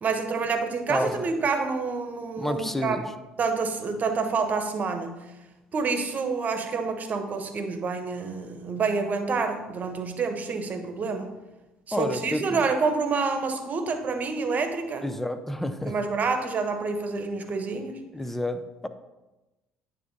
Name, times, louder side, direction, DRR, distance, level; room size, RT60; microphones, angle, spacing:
voice 1, 0.0-3.0 3.4-5.3 5.7-11.3 11.9-15.0 15.8-18.0, right 4 dB, 45° right, 7 dB, 1.2 m, -28 dB
voice 2, 0.9-1.3 2.4-3.0 11.9-12.6 15.0-15.9 18.1-18.9, left 1 dB, 5° left, 11 dB, 0.7 m, -29 dB
9.5 x 3.6 x 5.4 m, 1.0 s
hypercardioid pair, 60°, 4 cm